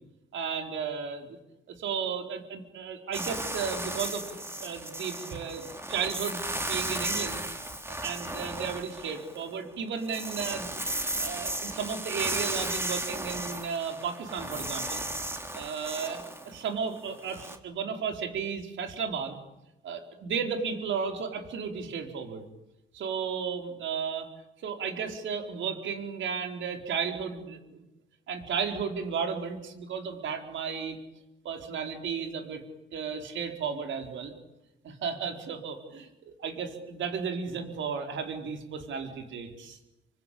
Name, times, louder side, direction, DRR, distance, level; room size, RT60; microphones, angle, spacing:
voice 1, 0.3-1.4 1.7-4.2 4.6-7.4 8.0-10.7 11.2-15.0 15.5-19.4 19.8-22.5 22.9-24.3 24.6-27.8 28.3-31.0 31.4-32.6 32.9-34.3 34.8-39.8, right 6 dB, 70° right, 5 dB, 4.7 m, -34 dB
sound 1, 3.1-9.5 9.9-17.6, right 1 dB, 10° right, 3.7 m, -35 dB
26.5 x 25.0 x 8.7 m, 0.91 s
cardioid pair, 90°, 20 cm